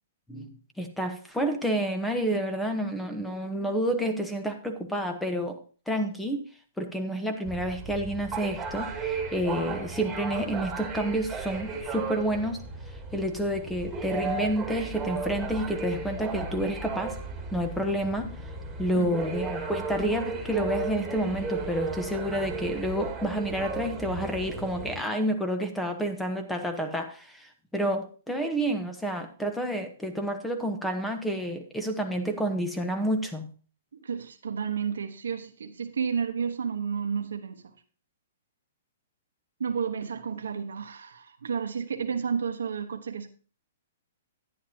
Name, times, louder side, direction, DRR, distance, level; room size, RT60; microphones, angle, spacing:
voice 1, 0.3-5.6 5.9-6.4 6.8-12.6 13.1-17.2 17.5-18.3 18.8-33.5, equal, 5° left, 1.1 m, -29 dB
sound 1, 7.4-25.0, right 4 dB, 10° right, 2.3 m, -35 dB
voice 2, 34.0-37.7 39.6-43.3, right 6 dB, 85° right, 1.1 m, -31 dB
10.5 x 10.0 x 2.8 m
hypercardioid pair, 145°, 0 cm